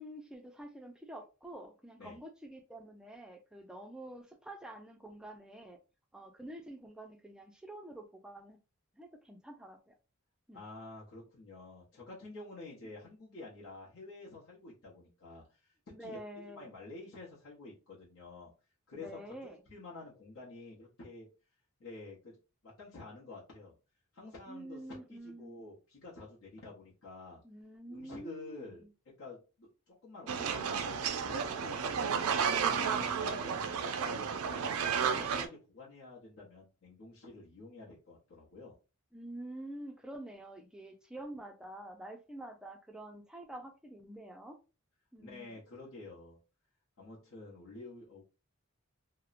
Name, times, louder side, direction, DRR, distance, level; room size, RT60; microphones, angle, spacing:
voice 1, 0.0-5.8 6.1-8.6 9.0-9.9 10.5-10.6 15.9-16.7 18.9-19.6 24.5-25.6 27.4-28.9 32.4-33.5 39.1-44.6 45.1-45.6, right 1 dB, 5° right, 0.3 m, -47 dB
voice 2, 10.5-16.2 16.5-18.5 18.9-19.4 19.7-21.3 21.8-22.4 22.6-23.8 24.1-27.4 27.9-28.8 29.2-32.4 32.7-38.7 45.2-46.4 47.0-48.2, left 3 dB, 75° left, 0.8 m, -49 dB
sound 1, 30.3-35.5, right 6 dB, 80° right, 0.4 m, -32 dB
2.9 x 2.0 x 2.4 m
head